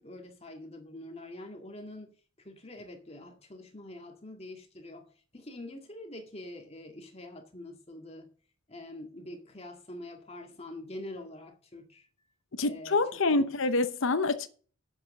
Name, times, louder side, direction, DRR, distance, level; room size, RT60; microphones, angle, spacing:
voice 1, 0.0-8.3 8.7-12.1 12.6-13.0 13.4-13.5, left 1 dB, 30° left, 1.9 m, -45 dB
voice 2, 12.5-14.5, left 3 dB, 65° left, 0.8 m, -27 dB
8.8 x 7.5 x 6.6 m
head